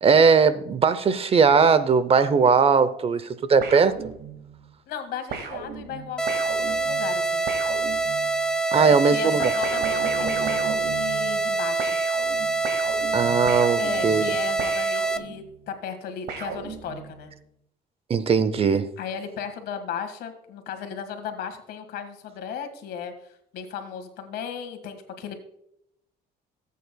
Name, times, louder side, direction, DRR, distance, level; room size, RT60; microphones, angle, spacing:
voice 1, 0.0-3.9 8.7-9.5 13.1-14.2 18.1-18.9, right 5 dB, 35° right, 14 dB, 0.6 m, -19 dB
sound 1, 3.6-4.6 5.3-8.5 9.4-11.5 11.8-15.6 16.3-17.3, right 5 dB, 70° right, 2.0 m, -35 dB
voice 2, 4.9-7.4 8.7-12.0 13.8-17.3 19.0-25.4, left 7 dB, 75° left, 7 dB, 1.7 m, -35 dB
sound 2, 6.2-15.2, right 3 dB, 5° left, 0.6 m, -25 dB
18.0 x 8.4 x 2.3 m, 0.76 s
cardioid pair, 110°, 17 cm